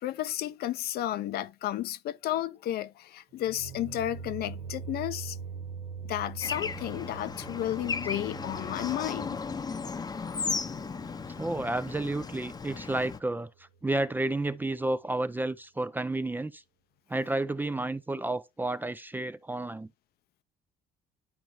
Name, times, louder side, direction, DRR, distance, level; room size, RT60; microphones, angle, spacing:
voice 1, 0.0-5.4 6.0-9.4 10.5-10.6, left 13 dB, 65° left, 0.6 m, -33 dB
sound 1, 3.3-12.3, right 6 dB, 80° right, 1.6 m, -43 dB
Bird / Traffic noise roadway noise, 6.4-13.2, left 5 dB, 25° left, 0.7 m, -36 dB
voice 2, 11.4-13.5 13.8-16.6 17.1-19.9, right 2 dB, 10° right, 0.4 m, -31 dB
11.0 x 4.4 x 3.0 m
cardioid pair, 110°, 17 cm